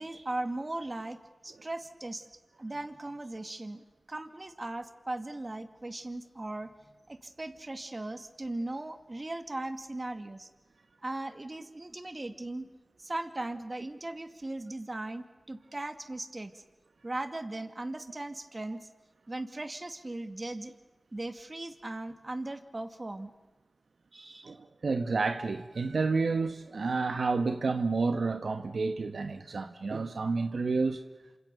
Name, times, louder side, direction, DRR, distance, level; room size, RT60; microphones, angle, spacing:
voice 1, 0.0-2.3 2.6-6.7 7.1-10.5 11.0-12.7 13.0-16.6 17.0-18.9 19.3-20.7 21.1-23.3 24.1-24.6, right 2 dB, 40° right, 9 dB, 2.3 m, -38 dB
voice 2, 24.4-31.0, right 4 dB, 75° right, 8 dB, 1.3 m, -30 dB
27.5 x 26.5 x 6.8 m, 1.2 s
cardioid pair, 45°, 0 cm